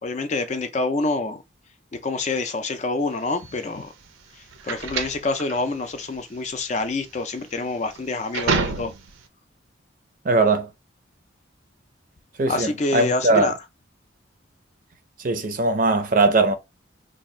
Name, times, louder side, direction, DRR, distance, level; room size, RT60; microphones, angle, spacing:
voice 1, 0.0-1.4 1.9-3.9 4.6-8.9 12.5-13.5, left 3 dB, 35° left, 0.4 m, -27 dB
sound 1, 3.3-9.3, right 4 dB, 90° right, 0.6 m, -29 dB
voice 2, 10.2-10.7 12.4-13.5 15.2-16.5, right 3 dB, 45° right, 0.5 m, -20 dB
2.7 x 2.4 x 4.2 m
head